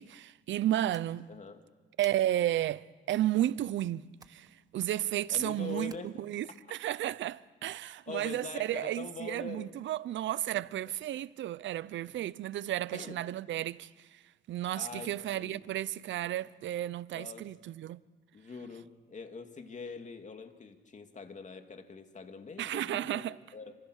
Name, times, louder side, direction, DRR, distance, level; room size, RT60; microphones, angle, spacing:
voice 1, 0.0-1.3 2.0-14.2 14.5-18.0 22.6-23.4, right 13 dB, 70° right, 0.7 m, -33 dB
sound 1, 0.9-1.5 2.0-2.6 4.2-4.5 4.8-5.2 5.9-6.6, right 3 dB, 20° right, 1.5 m, -57 dB
voice 2, 1.3-1.6 5.3-6.2 8.1-9.7 12.9-13.2 14.7-15.6 17.1-17.5 18.3-23.7, left 4 dB, 35° left, 2.6 m, -44 dB
27.5 x 26.0 x 6.5 m
cardioid pair, 90°, 20 cm